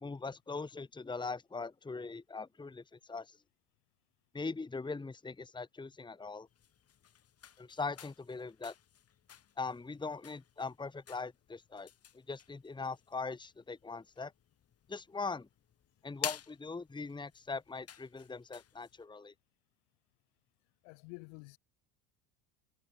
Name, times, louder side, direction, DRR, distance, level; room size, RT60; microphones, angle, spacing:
voice 1, 0.0-3.4 4.3-6.5 7.6-8.7 9.6-11.9 12.1-14.3 14.9-15.5 16.0-19.3, left 4 dB, 10° left, 1.5 m, -41 dB
sound 1, 6.5-19.0, left 9 dB, 40° left, 5.7 m, -50 dB
voice 2, 20.8-21.6, left 40 dB or more, 75° left, 4.4 m, -49 dB
supercardioid pair, 100°, 38 cm